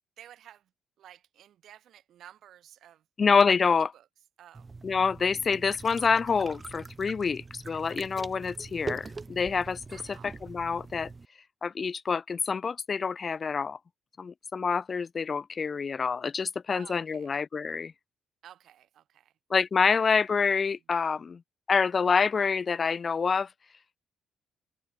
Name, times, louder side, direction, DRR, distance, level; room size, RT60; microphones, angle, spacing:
voice 1, 0.2-0.7 1.0-3.0 3.9-4.1 4.4-4.7 9.9-10.4 16.7-17.3 18.4-19.3 20.0-20.1 20.7-20.8, right 11 dB, 70° right, 7.1 m, -53 dB
voice 2, 3.2-3.9 4.8-11.1 11.6-13.8 14.2-17.9 19.5-21.4 21.7-23.5, left 5 dB, 40° left, 0.5 m, -27 dB
sound 1, 4.5-11.3, right 4 dB, 25° right, 2.4 m, -43 dB
cardioid pair, 90°, 0 cm